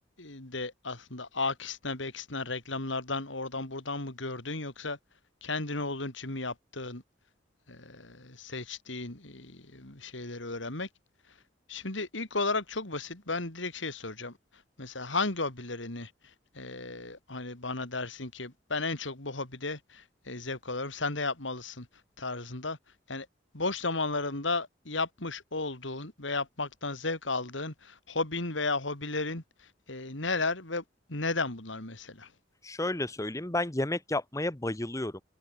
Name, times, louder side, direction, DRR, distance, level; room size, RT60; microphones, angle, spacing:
voice 1, 0.2-5.0 5.4-7.0 7.7-10.9 11.7-21.9 22.2-22.8 23.1-23.3 23.5-32.3, left 3 dB, 75° left, 3.6 m, -34 dB
voice 2, 32.6-35.2, left 1 dB, 15° left, 1.2 m, -31 dB
head